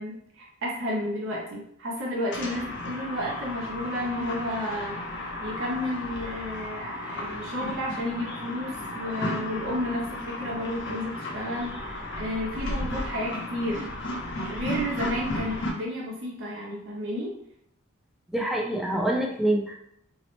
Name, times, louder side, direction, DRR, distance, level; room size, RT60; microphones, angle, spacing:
voice 1, 0.0-13.9 14.5-17.3, left 1 dB, 60° right, -3 dB, 0.6 m, -32 dB
sound 1, 2.3-15.7, left 1 dB, 55° left, 0.5 m, -34 dB
voice 2, 18.3-19.8, right 1 dB, ahead, -1 dB, 0.3 m, -26 dB
2.7 x 2.0 x 3.0 m, 0.73 s
head